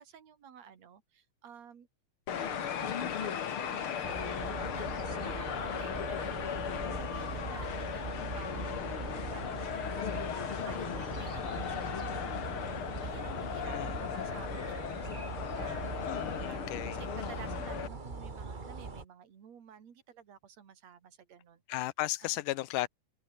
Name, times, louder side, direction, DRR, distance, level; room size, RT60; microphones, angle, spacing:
voice 1, 0.0-1.9 2.3-12.7 13.0-15.1 15.5-15.9 16.5-21.6 22.2-22.4, right 8 dB, 55° right, 3.7 m, -52 dB
sound 1, 2.3-17.9, left 8 dB, 50° left, 2.1 m, -37 dB
sound 2, 4.0-19.0, right 4 dB, 35° right, 0.8 m, -41 dB
voice 2, 13.6-14.0 16.0-17.0 21.7-22.9, left 17 dB, 80° left, 2.3 m, -35 dB
omnidirectional pair, 3.7 m